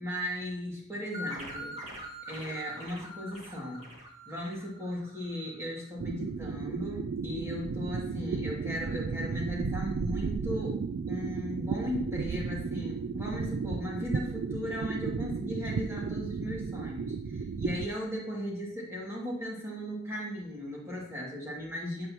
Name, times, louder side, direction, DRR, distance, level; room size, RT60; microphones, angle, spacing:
voice 1, 0.0-1.8 2.3-3.9 4.3-10.8 11.1-22.1, left 1 dB, 15° right, -4 dB, 2.5 m, -37 dB
sound 1, 1.1-5.5, equal, 40° right, 2.2 m, -43 dB
sound 2, 6.0-17.9, right 5 dB, 65° right, 0.3 m, -34 dB
9.2 x 8.5 x 3.0 m, 0.68 s
head